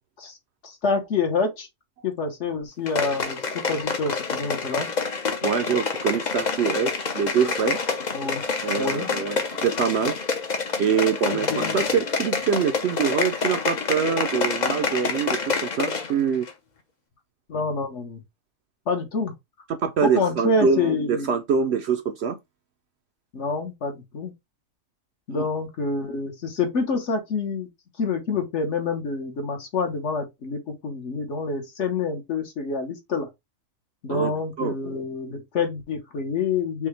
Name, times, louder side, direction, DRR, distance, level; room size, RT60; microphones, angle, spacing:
voice 1, 0.6-1.7 2.0-4.9 8.1-8.4 8.8-9.1 11.3-11.8 17.5-18.2 18.9-19.3 20.0-21.3 23.3-24.3 25.3-27.7 28.0-33.3 34.0-36.9, left 4 dB, 60° left, 1.3 m, -27 dB
sound 1, 2.8-16.1 16.4-16.5, left 4 dB, 40° left, 0.7 m, -27 dB
voice 2, 5.4-7.8 8.6-10.1 10.8-16.5 19.8-22.4 25.3-25.5 34.1-34.3 34.6-34.7, right 6 dB, 65° right, 0.7 m, -24 dB
5.4 x 2.2 x 3.2 m
omnidirectional pair, 1.4 m